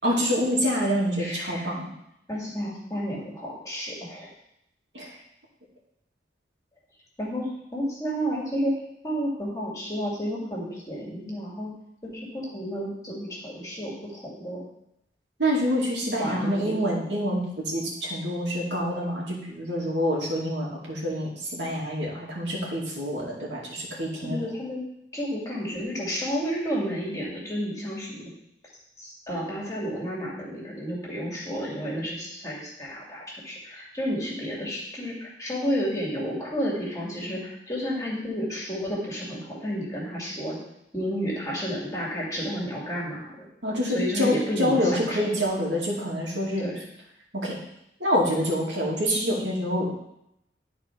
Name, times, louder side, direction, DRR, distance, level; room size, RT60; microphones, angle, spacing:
voice 1, 0.0-1.9 4.9-5.1 15.4-24.4 43.6-46.6 47.3-47.6 48.0-49.9, equal, 75° right, -4 dB, 2.5 m, -26 dB
voice 2, 1.2-1.7 2.3-4.3 7.2-11.7 12.0-14.6 16.2-16.7 24.2-24.8 25.1-28.3 29.0-40.6 40.9-43.5 43.9-45.3 46.6-46.8, equal, 20° left, -5 dB, 2.3 m, -31 dB
12.0 x 4.4 x 4.5 m, 0.79 s
head